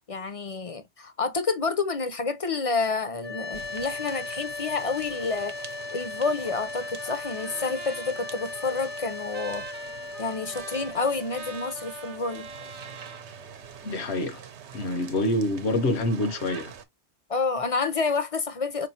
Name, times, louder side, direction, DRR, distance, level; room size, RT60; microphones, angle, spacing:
voice 1, 0.1-9.7 10.2-12.5 17.3-18.9, left 4 dB, 40° left, 0.6 m, -29 dB
sound 1, 3.2-14.3, left 3 dB, 10° right, 0.6 m, -38 dB
sound 2, 3.5-16.8, right 8 dB, 80° right, 1.0 m, -46 dB
Trumpet, 6.5-13.3, right 5 dB, 55° right, 0.9 m, -45 dB
voice 2, 13.8-14.4 14.7-16.7, left 1 dB, 75° left, 1.2 m, -26 dB
4.8 x 3.0 x 2.7 m
omnidirectional pair, 1.1 m